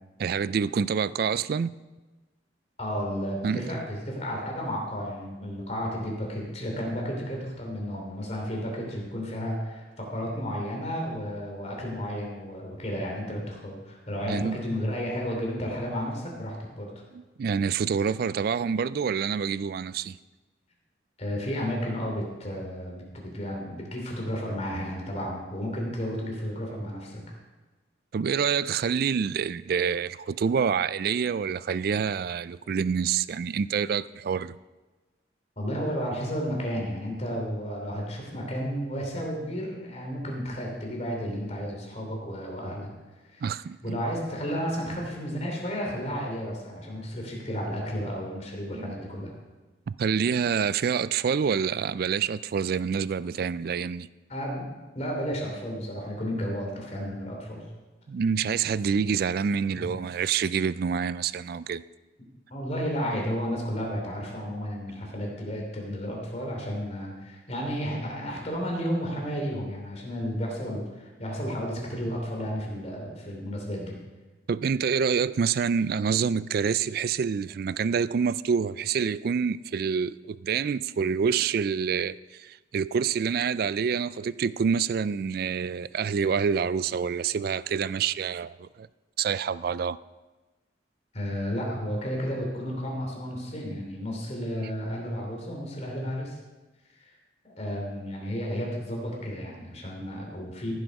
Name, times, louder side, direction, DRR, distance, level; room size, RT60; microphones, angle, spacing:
voice 1, 0.2-1.7 3.4-3.8 14.3-14.6 17.1-20.2 28.1-34.6 43.4-44.0 48.7-48.9 49.9-54.1 58.1-61.8 74.5-88.9 89.2-90.0, right 6 dB, 50° right, 18 dB, 0.3 m, -27 dB
voice 2, 2.8-16.9 21.2-27.2 35.6-42.9 43.3-43.4 43.8-49.3 54.3-57.6 59.7-60.0 62.5-73.9 91.1-96.4 97.0-97.1 97.4-100.8, equal, 35° left, -1 dB, 3.0 m, -32 dB
14.5 x 7.7 x 5.2 m, 1.2 s
head